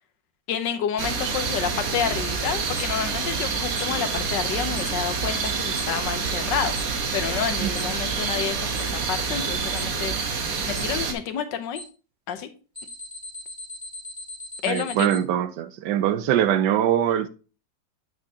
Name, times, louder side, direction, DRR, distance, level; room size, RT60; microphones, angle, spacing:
voice 1, 0.5-6.7 7.1-10.1 10.7-11.8 12.3-12.5 14.6-15.1, left 9 dB, 80° left, 1.5 m, -29 dB
sound 1, 1.0-11.1, right 5 dB, 55° right, 1.4 m, -27 dB
Alarm, 2.8-2.9 3.8-3.9 4.8-4.9 5.8-5.9 6.8-6.9 7.8-7.9 8.8-8.9 9.8-9.9 10.8-10.9 11.8-11.9 12.8-15.2, left 2 dB, 10° right, 3.8 m, -37 dB
voice 2, 14.7-17.3, right 10 dB, 75° right, 1.3 m, -23 dB
8.7 x 6.3 x 2.8 m
omnidirectional pair, 1.9 m